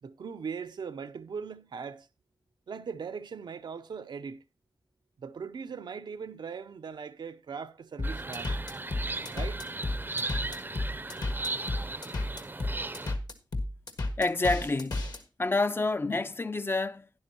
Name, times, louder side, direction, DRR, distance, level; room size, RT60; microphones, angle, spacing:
voice 1, 0.0-2.1 2.7-4.4 5.2-8.6 9.3-9.7, right 6 dB, 80° right, 0.6 m, -40 dB
sound 1, 8.0-15.2, left 2 dB, 65° left, 1.5 m, -32 dB
sound 2, 8.0-13.1, right 2 dB, 25° right, 0.5 m, -36 dB
voice 2, 14.2-15.1 15.4-17.1, left 3 dB, 30° left, 0.5 m, -28 dB
12.0 x 10.0 x 2.8 m
wide cardioid pair, 70°, 8 cm